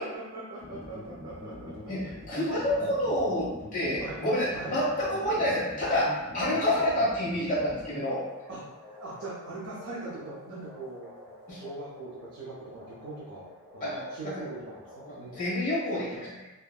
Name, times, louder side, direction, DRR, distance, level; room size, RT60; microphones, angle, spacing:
voice 1, 0.0-1.5 4.0-4.2 4.5-4.8 8.5-8.7 9.0-11.1 11.5-13.5 13.7-15.4, right 2 dB, 60° right, -7 dB, 0.5 m, -41 dB
sound 1, 0.6-15.4, left 1 dB, ahead, 1.5 m, -46 dB
voice 2, 1.9-8.3 11.5-11.6 13.8-14.1 15.1-16.4, left 1 dB, 35° left, -8 dB, 1.0 m, -28 dB
2.9 x 2.6 x 2.3 m, 1.0 s
head